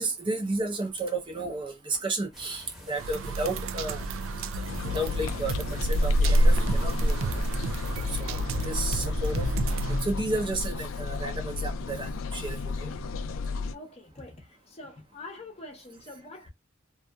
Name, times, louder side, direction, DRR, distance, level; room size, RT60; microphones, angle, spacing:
voice 1, 0.0-4.0 4.9-7.2 8.1-9.5 9.9-12.9, right 2 dB, 25° right, 0.6 m, -32 dB
sound 1, 2.3-8.2, equal, ahead, 0.9 m, -50 dB
sound 2, 3.0-10.0, right 2 dB, 85° right, 0.4 m, -33 dB
sound 3, 4.6-13.7, left 1 dB, 85° left, 0.3 m, -28 dB
voice 2, 13.7-16.5, left 2 dB, 30° left, 0.7 m, -45 dB
2.6 x 2.4 x 2.2 m
head